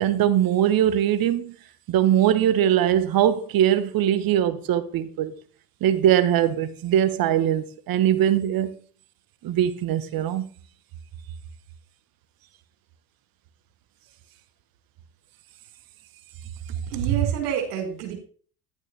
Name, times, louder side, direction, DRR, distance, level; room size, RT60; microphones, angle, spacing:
voice 1, 0.0-1.5 1.9-5.3 5.8-8.7 9.4-10.5, right 11 dB, 50° right, 1.3 m, -21 dB
voice 2, 16.9-18.1, right 10 dB, 75° right, 4.5 m, -26 dB
11.5 x 9.8 x 3.4 m
hypercardioid pair, 70°, 47 cm